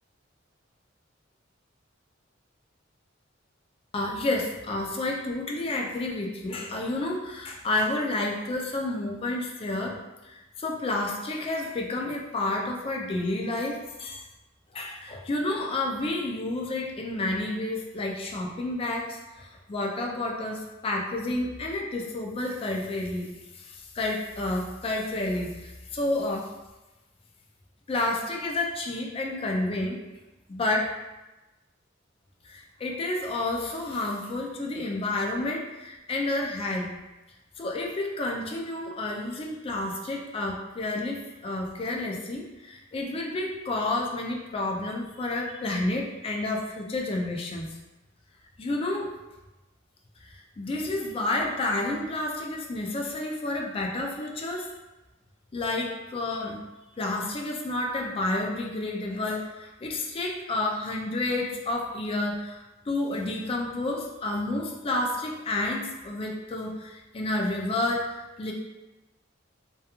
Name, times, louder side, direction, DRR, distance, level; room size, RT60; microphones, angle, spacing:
voice 1, 3.9-9.9 10.2-14.2 14.7-23.3 23.6-26.5 27.9-30.0 30.5-30.9 32.4-36.9 37.6-47.7 48.6-49.1 50.6-54.7 55.5-56.6 57.0-62.6 62.9-68.5, left 2 dB, 30° left, 0 dB, 0.3 m, -30 dB
2.3 x 2.2 x 2.8 m, 1.1 s
head